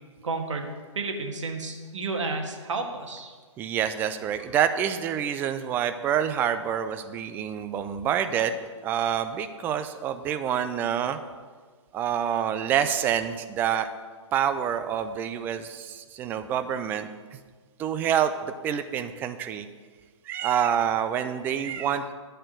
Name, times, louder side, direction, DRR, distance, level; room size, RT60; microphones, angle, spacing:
voice 1, 0.2-0.7 0.9-3.3, right 3 dB, 70° right, 3 dB, 1.6 m, -31 dB
voice 2, 3.6-8.6 8.8-11.2 11.9-13.9 14.3-17.4 17.8-19.7 20.3-22.1, right 9 dB, 10° right, 10 dB, 0.3 m, -27 dB
10.5 x 4.3 x 7.6 m, 1.5 s
figure-of-eight pair, 130°, 16 cm